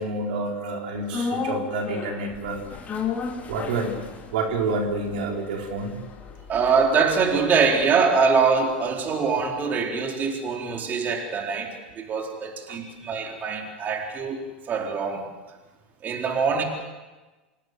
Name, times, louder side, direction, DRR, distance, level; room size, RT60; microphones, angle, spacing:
voice 1, 0.0-2.6 3.5-4.0 4.3-6.0 12.7-12.8, right 3 dB, 65° right, 2 dB, 4.2 m, -28 dB
sound 1, 1.1-9.4 9.7-9.8, left 5 dB, 30° left, 3.7 m, -35 dB
voice 2, 6.5-14.4 14.7-15.3 16.0-16.6, right 5 dB, 35° right, 2 dB, 4.2 m, -23 dB
26.5 x 18.5 x 8.1 m, 1.2 s
hypercardioid pair, 90°, 5 cm